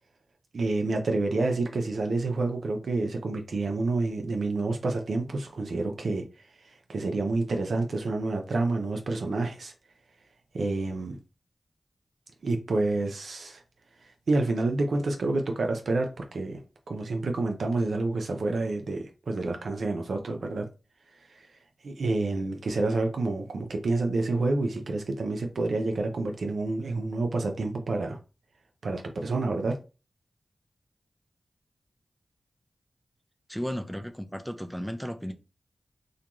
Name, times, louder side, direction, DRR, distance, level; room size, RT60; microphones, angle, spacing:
voice 1, 0.5-6.2 6.9-9.7 10.5-11.2 12.4-13.6 14.3-16.6 16.9-20.7 21.8-28.2 28.8-29.8, right 2 dB, 80° right, 0.5 m, -28 dB
voice 2, 33.5-35.3, equal, ahead, 0.5 m, -34 dB
2.5 x 2.2 x 2.9 m
cardioid pair, 40°, 0 cm